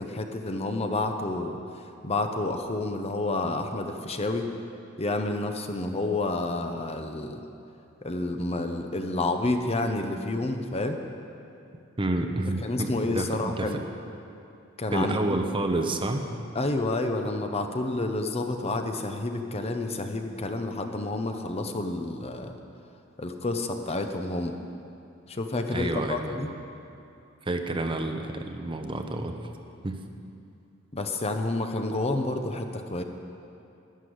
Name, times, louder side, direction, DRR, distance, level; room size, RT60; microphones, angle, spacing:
voice 1, 0.0-4.5 5.0-7.4 8.0-11.0 12.5-13.8 14.8-15.2 16.5-22.6 23.2-24.6 25.3-26.5 30.9-33.0, left 2 dB, 30° left, 5 dB, 0.8 m, -29 dB
voice 2, 12.0-13.8 14.9-16.2 25.7-26.4 27.4-29.3 29.8-30.0, right 2 dB, 25° right, 5 dB, 0.8 m, -29 dB
11.0 x 10.5 x 7.9 m, 2.6 s
head